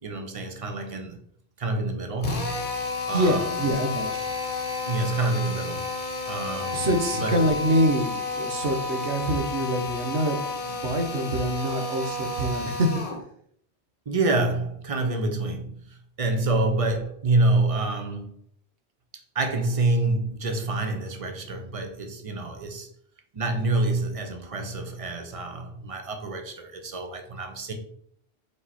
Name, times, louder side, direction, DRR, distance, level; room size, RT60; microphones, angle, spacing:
voice 1, 0.0-1.2 1.6-2.5 3.1-3.6 4.8-5.8 6.3-6.9 7.2-7.4 14.1-18.4 19.3-22.9 23.3-27.7, right 2 dB, 35° right, 1.0 m, -27 dB
Drill, 2.2-13.2, left 3 dB, 45° left, 1.0 m, -31 dB
voice 2, 3.1-4.1 6.7-12.9 16.4-16.5, right 1 dB, 85° right, 1.4 m, -25 dB
5.3 x 4.7 x 4.2 m
omnidirectional pair, 1.1 m